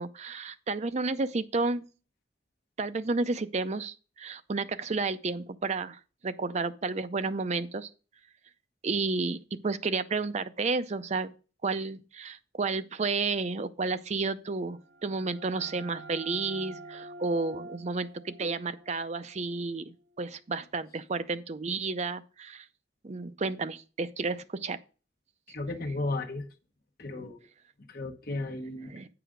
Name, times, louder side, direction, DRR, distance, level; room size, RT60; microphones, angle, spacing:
voice 1, 0.0-1.9 2.8-7.9 8.8-11.3 11.6-22.6 23.0-24.8 28.9-29.1, right 3 dB, 40° right, 0.5 m, -31 dB
sound 1, 14.7-20.2, right 2 dB, 75° right, 1.1 m, -47 dB
voice 2, 25.5-26.5 27.0-27.4 27.9-28.9, left 2 dB, 60° left, 1.1 m, -34 dB
8.8 x 4.9 x 5.0 m
head